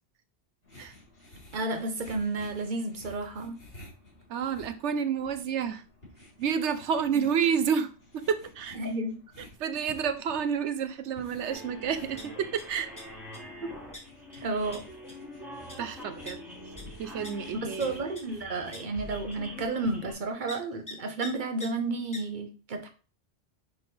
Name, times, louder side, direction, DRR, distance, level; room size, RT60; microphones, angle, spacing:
sound 1, 0.6-20.3, left 1 dB, 50° left, 3.8 m, -53 dB
voice 1, 1.5-3.6 7.1-7.2 8.8-9.2 13.6-13.7 14.4-14.8 17.6-22.9, right 2 dB, 45° right, 1.1 m, -32 dB
voice 2, 4.3-5.8 6.4-8.8 9.6-12.9 14.3-14.5 15.8-16.4 17.0-18.0, right 7 dB, 75° right, 1.0 m, -30 dB
sound 2, 11.5-11.7 12.0-12.6 13.0-13.4 13.9-14.0 14.3-14.4 14.7-14.8 15.1-15.3 15.7-15.8 16.3-16.4 16.8-16.9 17.2-17.3 17.8-17.9 18.2-18.3 18.7-18.8 19.3-19.4 20.5-20.6 20.9-21.0 21.2-21.3 21.6-21.7 22.1-22.2, left 2 dB, 15° left, 1.3 m, -42 dB
sound 3, 11.5-20.1, left 1 dB, ahead, 2.2 m, -45 dB
9.6 x 3.8 x 3.3 m
omnidirectional pair, 1.2 m